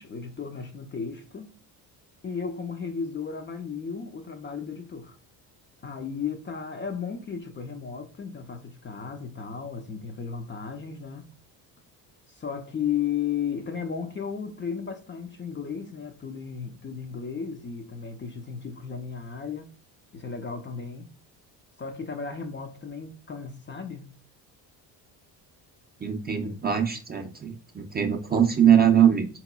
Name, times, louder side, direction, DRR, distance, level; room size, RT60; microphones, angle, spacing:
voice 1, 0.0-1.5 2.2-5.2 5.8-11.3 12.3-19.7 20.1-21.1 21.8-24.1, left 6 dB, 25° left, 0.4 m, -34 dB
voice 2, 26.0-29.3, right 8 dB, 25° right, 0.5 m, -22 dB
3.7 x 2.9 x 2.3 m
supercardioid pair, 80°, 44 cm